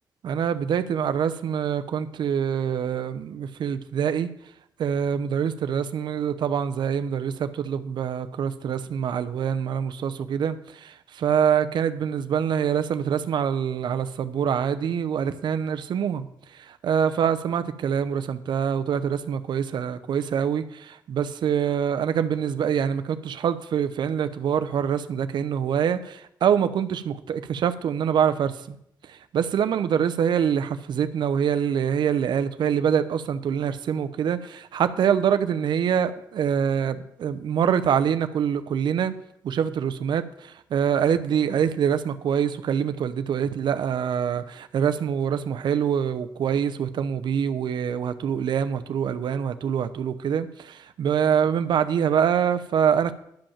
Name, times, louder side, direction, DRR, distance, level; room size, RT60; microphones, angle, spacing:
voice 1, 0.2-4.3 4.8-16.3 16.6-28.8 29.1-39.1 39.4-53.1, right 8 dB, 70° right, 10 dB, 0.7 m, -25 dB
11.5 x 5.3 x 7.2 m, 0.75 s
wide cardioid pair, 130°, 8 cm